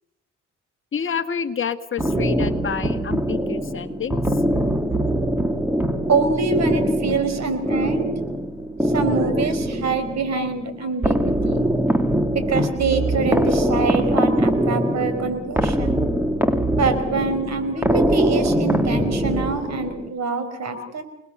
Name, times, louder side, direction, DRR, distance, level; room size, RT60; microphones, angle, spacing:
voice 1, 0.9-4.2 9.7-9.8 10.3-10.9 20.7-20.9, left 7 dB, 40° left, 9 dB, 1.7 m, -29 dB
sound 1, 2.0-20.1, right 1 dB, 5° right, 2.5 m, -22 dB
voice 2, 6.1-8.1 8.8-11.7 12.3-16.1 16.7-21.0, right 4 dB, 60° right, 10 dB, 5.0 m, -25 dB
28.5 x 20.5 x 6.8 m, 0.80 s
cardioid pair, 90°, 30 cm